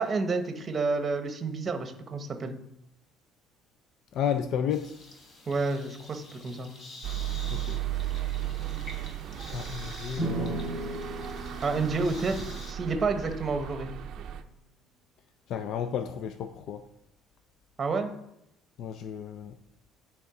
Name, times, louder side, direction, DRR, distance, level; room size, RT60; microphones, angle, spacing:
voice 1, 0.0-2.5 5.5-6.7 11.6-13.9 17.8-18.1, right 3 dB, 25° right, 7 dB, 0.9 m, -29 dB
voice 2, 4.1-5.0 7.5-7.8 9.5-10.6 15.5-16.8 18.8-19.6, left 8 dB, 55° left, 8 dB, 0.4 m, -32 dB
sound 1, 4.7-12.7, left 2 dB, 40° left, 1.3 m, -48 dB
sound 2, 7.0-14.4, right 11 dB, 55° right, 0.5 m, -35 dB
sound 3, 10.2-13.7, right 2 dB, 25° left, 1.8 m, -36 dB
9.6 x 3.5 x 4.8 m, 0.81 s
cardioid pair, 150°, 0 cm